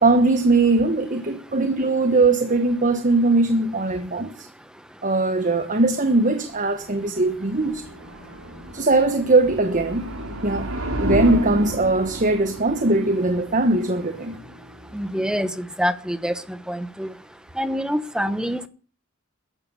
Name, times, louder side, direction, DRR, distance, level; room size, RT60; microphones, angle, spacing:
voice 1, 0.0-4.5 5.0-7.8 8.7-10.1 10.4-10.7 11.0-14.4, right 2 dB, 35° right, 1.3 m, -20 dB
sound 1, 6.6-15.6, right 1 dB, 65° right, 3.6 m, -32 dB
voice 2, 14.9-16.4 16.7-17.1 17.6-18.7, equal, 5° right, 1.0 m, -25 dB
14.5 x 10.5 x 8.4 m
head